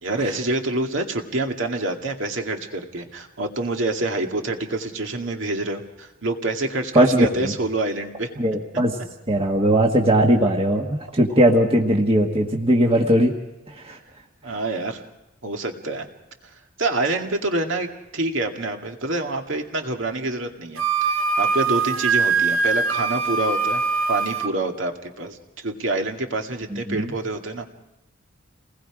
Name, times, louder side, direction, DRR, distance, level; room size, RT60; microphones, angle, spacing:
voice 1, 0.0-8.3 14.4-15.0 15.4-16.1 16.8-23.8 24.1-27.7, right 2 dB, 65° right, 3 dB, 2.2 m, -27 dB
voice 2, 6.9-7.5 8.4-9.0 9.3-13.3 13.7-14.0 14.5-14.6 26.7-27.1, right 1 dB, 30° right, 0 dB, 1.5 m, -19 dB
Wind instrument woodwind instrument, 20.8-24.5, right 4 dB, 90° right, 1.3 m, -22 dB
29.0 x 20.0 x 5.0 m, 1.0 s
head